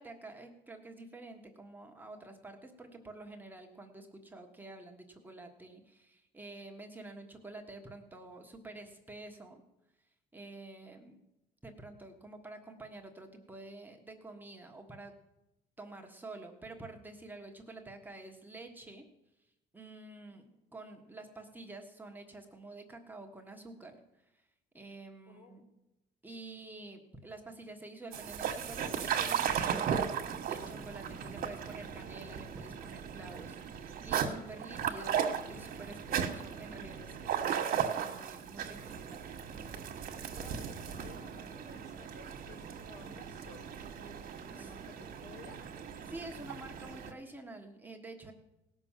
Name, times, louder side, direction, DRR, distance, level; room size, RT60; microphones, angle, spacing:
voice 1, 0.0-9.6 10.3-11.2 11.6-15.1 15.8-19.0 19.7-20.4 20.7-24.0 24.3-24.4 24.7-25.6 26.2-29.5 30.5-39.2 44.6-44.7 46.1-48.3, right 2 dB, 10° right, 2 dB, 1.4 m, -49 dB
voice 2, 25.3-25.6 40.1-43.7 44.4-45.6, left 3 dB, 70° left, 0 dB, 4.7 m, -54 dB
sound 1, 28.1-47.1, right 8 dB, 60° right, 1.5 m, -37 dB
17.5 x 6.1 x 7.3 m, 0.94 s
cardioid pair, 110°, 17 cm